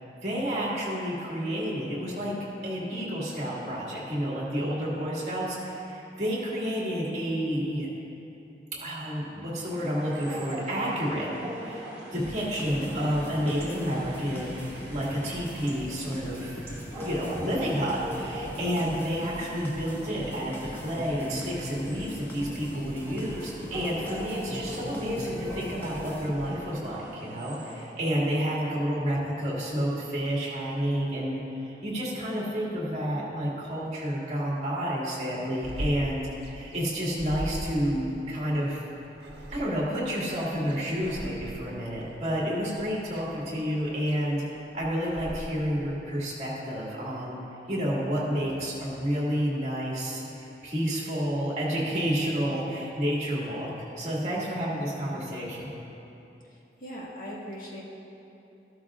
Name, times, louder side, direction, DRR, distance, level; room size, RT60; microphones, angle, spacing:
voice 1, 0.2-2.4 2.6-7.9 8.7-11.3 11.6-14.6 14.9-16.6 17.0-38.8 39.5-47.4 47.7-55.7, equal, 40° right, -5 dB, 2.1 m, -30 dB
sound 1, 9.6-27.9, equal, 15° right, 2.2 m, -42 dB
sound 2, 12.2-26.7, equal, 10° left, 0.6 m, -41 dB
sound 3, 35.6-45.4, right 1 dB, 80° right, 1.0 m, -41 dB
voice 2, 56.4-57.8, equal, 50° left, -4 dB, 1.5 m, -40 dB
13.5 x 12.5 x 2.4 m, 2.9 s
head